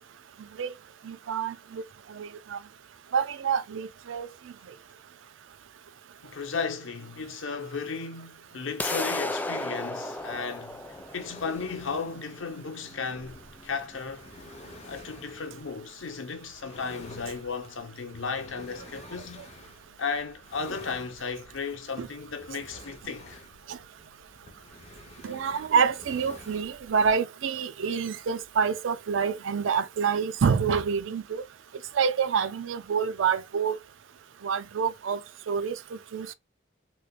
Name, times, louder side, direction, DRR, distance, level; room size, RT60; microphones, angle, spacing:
voice 1, 1.1-1.8 2.2-2.6 3.1-4.3 22.0-22.1 25.2-31.4 32.0-33.8 34.4-35.2 35.5-35.8 36.1-36.3, right 6 dB, 75° right, 0.4 m, -27 dB
voice 2, 6.2-14.3 14.9-19.5 20.0-23.4, left 5 dB, 80° left, 0.8 m, -35 dB
sound 1, 8.8-14.8, left 2 dB, 10° left, 0.3 m, -35 dB
sound 2, 10.2-27.2, left 2 dB, 35° left, 0.8 m, -50 dB
3.3 x 3.1 x 2.2 m
head